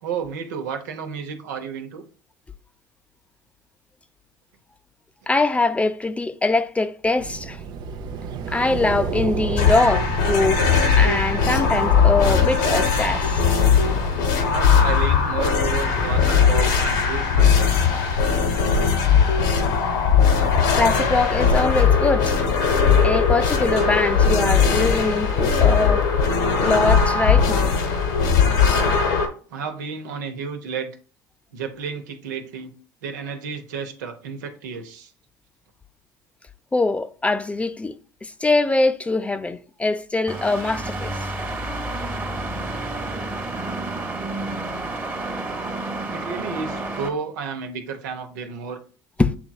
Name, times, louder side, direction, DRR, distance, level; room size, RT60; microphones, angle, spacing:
voice 1, 0.0-2.0 14.5-17.8 29.5-30.9 31.5-32.7 33.0-35.1 46.1-48.8, right 6 dB, 80° right, 0.8 m, -32 dB
voice 2, 5.3-7.6 8.5-10.6 11.0-13.4 20.8-22.5 23.0-26.1 26.6-27.7 36.7-37.9 38.2-41.2 49.2-49.3, left 3 dB, 15° left, 0.4 m, -22 dB
sound 1, 7.2-26.3, right 5 dB, 50° right, 0.6 m, -34 dB
sound 2, 9.6-29.3, left 6 dB, 75° left, 1.1 m, -19 dB
sound 3, 40.3-47.1, right 2 dB, 20° right, 1.1 m, -30 dB
7.9 x 2.9 x 2.3 m
hypercardioid pair, 80°, 9 cm